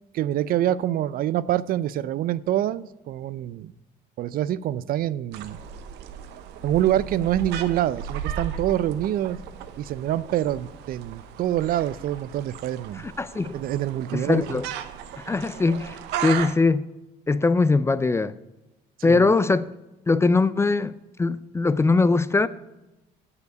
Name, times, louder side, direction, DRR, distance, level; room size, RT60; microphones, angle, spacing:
voice 1, 0.1-3.7 4.2-5.6 6.6-9.4 9.8-13.0 13.5-14.6 19.1-19.4, right 12 dB, 60° right, 0.4 m, -26 dB
sound 1, 5.3-16.5, right 9 dB, 90° right, 0.7 m, -36 dB
voice 2, 13.0-13.6 14.1-14.7 15.2-16.8 17.3-18.4 19.0-19.6 20.1-20.9 21.2-22.5, left 3 dB, 15° left, 0.3 m, -21 dB
7.0 x 6.8 x 7.9 m
cardioid pair, 110°, 17 cm